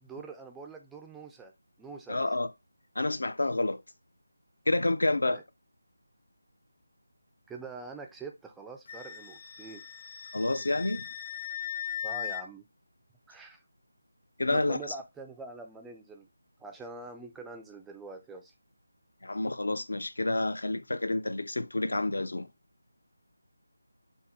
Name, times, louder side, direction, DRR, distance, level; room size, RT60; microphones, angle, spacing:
voice 1, 0.0-1.5 1.8-2.3 5.2-5.4 7.5-9.8 12.0-12.7 13.3-13.6 14.5-16.3 16.6-18.5, right 3 dB, 5° right, 0.3 m, -44 dB
voice 2, 2.1-2.5 3.0-3.8 4.7-5.4 10.3-11.0 14.4-14.8 19.2-22.5, left 2 dB, 75° left, 0.6 m, -29 dB
Wind instrument woodwind instrument, 8.9-12.4, left 10 dB, 40° left, 0.8 m, -39 dB
5.5 x 2.2 x 4.1 m
figure-of-eight pair, 170°, 0 cm